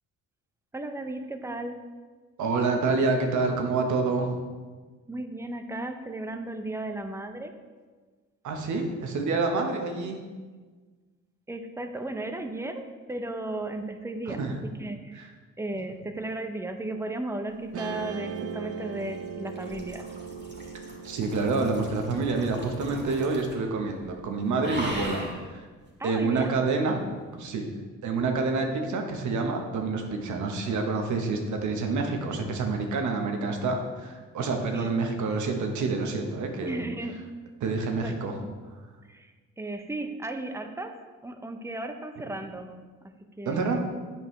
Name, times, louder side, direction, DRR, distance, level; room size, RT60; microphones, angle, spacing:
voice 1, 0.7-1.8 5.1-7.5 11.5-15.3 15.6-20.1 26.0-26.5 34.7-34.9 36.6-37.2 38.0-38.5 39.0-40.9 41.2-42.8 43.4-43.8, right 2 dB, 10° right, 6 dB, 0.6 m, -35 dB
voice 2, 2.4-4.4 8.4-10.2 14.3-14.6 15.2-15.3 21.0-25.2 25.5-25.6 26.0-27.6 28.0-36.8 37.6-38.4 43.4-43.8, right 3 dB, 70° right, 3 dB, 1.1 m, -27 dB
Guitar, 17.7-24.2, right 6 dB, 50° right, 0.6 m, -40 dB
sound 1, 18.0-23.7 24.0-24.3 24.6-25.4 26.4-26.5, right 1 dB, 35° right, 1.9 m, -40 dB
8.5 x 5.3 x 3.2 m, 1.4 s
cardioid pair, 90°, 30 cm